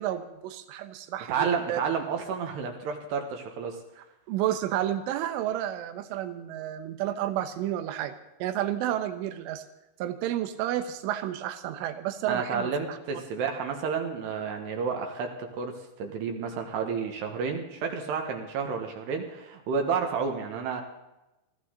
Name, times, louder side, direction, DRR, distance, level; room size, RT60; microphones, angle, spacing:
voice 1, 0.0-1.8 4.3-8.1 8.4-9.7 10.0-13.0, right 12 dB, 90° right, 10 dB, 3.5 m, -31 dB
voice 2, 1.3-3.8 12.3-20.8, right 6 dB, 70° right, 4 dB, 3.3 m, -31 dB
21.0 x 15.5 x 3.9 m, 0.95 s
omnidirectional pair, 5.5 m